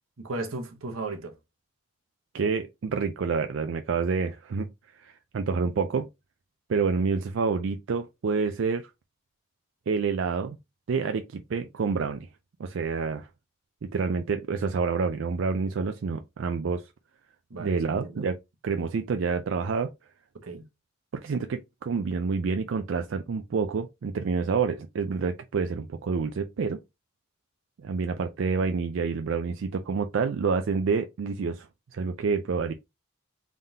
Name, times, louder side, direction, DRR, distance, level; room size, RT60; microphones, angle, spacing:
voice 1, 0.2-1.4 17.5-18.2 20.4-20.6, right 2 dB, 85° right, 0.9 m, -36 dB
voice 2, 2.3-6.1 6.7-8.9 9.9-10.6 10.9-12.3 12.6-13.3 13.8-16.9 17.6-18.4 18.6-19.9 21.1-26.8 27.8-32.7, right 5 dB, 65° right, 0.4 m, -28 dB
3.7 x 3.6 x 2.7 m
head